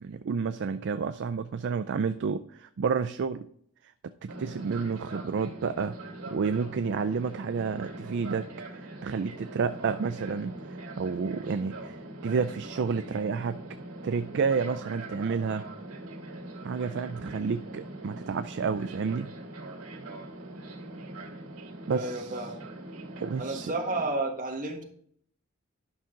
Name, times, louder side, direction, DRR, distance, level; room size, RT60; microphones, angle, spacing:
voice 1, 0.0-3.5 4.2-6.0 6.3-8.4 8.7-10.5 11.0-12.0 12.2-13.6 14.0-15.6 16.6-19.3 21.9-22.5 23.2-23.7, right 5 dB, 55° right, 10 dB, 0.4 m, -30 dB
Fixed-wing aircraft airplane, 4.3-24.0, right 2 dB, 75° right, 2.3 m, -42 dB
voice 2, 21.9-22.5 23.4-24.8, right 2 dB, 40° right, 1 dB, 1.5 m, -31 dB
11.0 x 5.9 x 3.8 m, 0.65 s
head